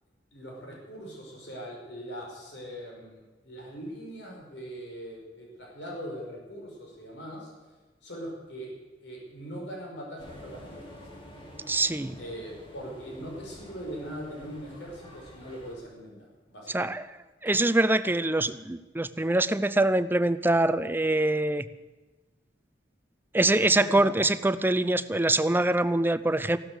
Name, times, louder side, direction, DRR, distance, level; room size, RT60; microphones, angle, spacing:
voice 1, 0.3-7.5 8.0-8.7 9.0-11.0 12.2-16.9 18.0-18.1 23.8-24.1, equal, 75° left, -1 dB, 5.2 m, -41 dB
sound 1, 10.2-15.8, equal, 30° left, 2.9 m, -48 dB
voice 2, 11.7-12.2 16.7-17.0 17.4-21.6 23.3-26.6, right 2 dB, 10° right, 13 dB, 0.5 m, -24 dB
15.0 x 12.5 x 6.7 m, 1.2 s
head